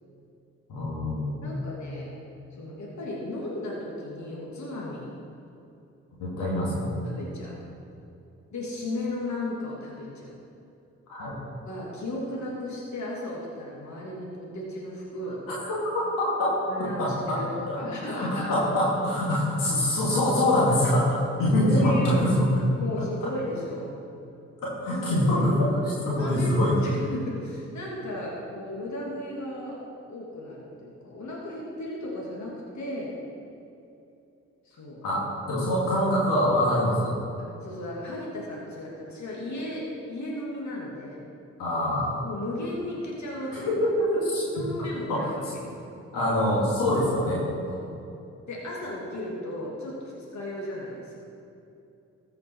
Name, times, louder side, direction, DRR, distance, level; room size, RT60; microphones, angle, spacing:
voice 1, 0.7-1.7 6.2-6.9 11.1-11.4 15.6-16.6 17.0-17.4 17.7-17.8 18.1-22.5 24.6-26.7 35.0-37.1 41.6-42.2 43.5-44.0 44.2-44.4 45.1-45.3 46.1-47.4, left 1 dB, 85° left, -6 dB, 2.6 m, -24 dB
voice 2, 1.4-2.1 2.5-5.2 7.0-7.6 8.5-10.4 11.7-15.4 16.7-17.5 17.7-18.5 21.6-22.2 22.8-23.9 24.9-25.4 26.2-33.2 34.6-35.0 37.4-41.2 42.2-43.7 44.5-45.4 47.7-47.9 48.5-51.2, left 1 dB, 60° left, -4 dB, 2.5 m, -35 dB
14.0 x 5.8 x 4.7 m, 2.8 s
hypercardioid pair, 45°, 33 cm